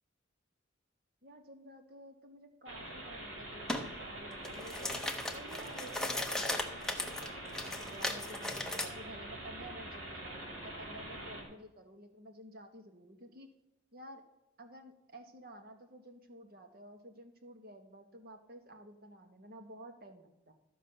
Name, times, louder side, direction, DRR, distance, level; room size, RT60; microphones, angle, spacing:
voice 1, 1.2-5.0 5.3-13.5 13.9-14.2 14.6-20.5, right 1 dB, 50° right, 6 dB, 1.4 m, -52 dB
sound 1, 2.7-11.4, right 1 dB, 85° right, 3.2 m, -45 dB
sound 2, 3.7-3.9 4.3-8.9, left 1 dB, 5° left, 0.7 m, -37 dB
13.5 x 5.4 x 6.6 m, 0.91 s
head